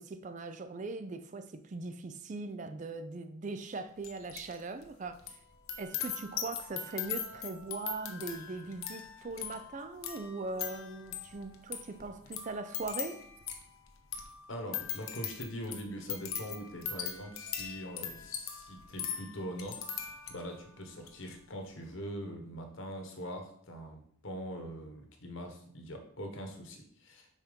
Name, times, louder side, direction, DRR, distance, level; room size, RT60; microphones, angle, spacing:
voice 1, 0.0-5.4 5.8-13.2, right 3 dB, 35° right, 0.4 m, -40 dB
sound 1, 4.0-4.6 4.8-20.6 21.0-21.3, left 8 dB, 80° left, 0.9 m, -41 dB
voice 2, 14.5-27.3, equal, 65° left, 1.2 m, -42 dB
5.8 x 4.3 x 5.2 m
head